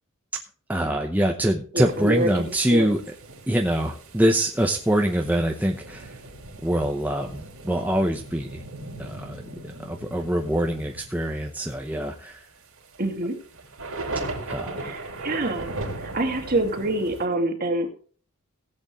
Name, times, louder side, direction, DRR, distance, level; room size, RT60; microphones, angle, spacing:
voice 1, 0.7-3.0 3.5-6.2 6.6-8.6 9.0-9.4 9.8-12.4 14.5-14.9, right 1 dB, 10° right, 2 dB, 0.8 m, -24 dB
voice 2, 1.7-2.9 13.0-13.4 14.8-17.9, right 1 dB, 45° right, 4 dB, 2.2 m, -26 dB
sound 1, 1.9-17.2, right 2 dB, 80° right, 3.2 m, -38 dB
17.5 x 8.0 x 3.0 m, 0.42 s
head